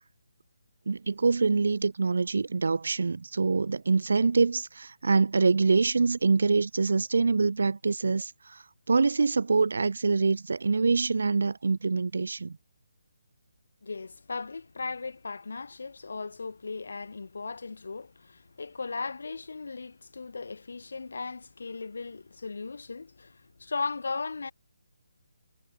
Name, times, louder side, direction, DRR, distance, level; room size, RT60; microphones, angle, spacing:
voice 1, 0.9-12.6, right 4 dB, 60° right, 0.5 m, -25 dB
voice 2, 13.8-24.5, left 4 dB, 60° left, 1.1 m, -37 dB
figure-of-eight pair, 145°, 0 cm